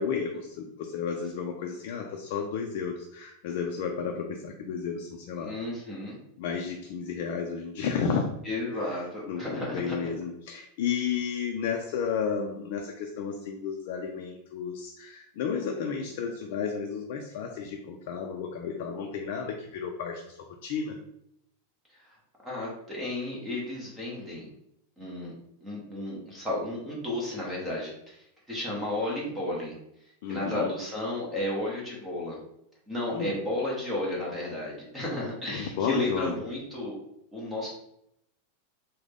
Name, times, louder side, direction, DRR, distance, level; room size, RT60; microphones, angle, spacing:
voice 1, 0.0-5.5 6.4-8.2 8.8-9.0 9.3-21.0 30.2-30.7 33.1-33.4 35.5-36.4, left 6 dB, 50° left, 2 dB, 0.4 m, -32 dB
voice 2, 5.4-6.1 8.4-10.1 21.9-22.2 22.4-24.5 25.0-25.3 25.6-29.8 30.3-32.4 32.9-37.0 37.3-37.7, left 1 dB, 5° right, -5 dB, 0.9 m, -33 dB
3.6 x 2.1 x 3.4 m, 0.78 s
supercardioid pair, 175°, 0 cm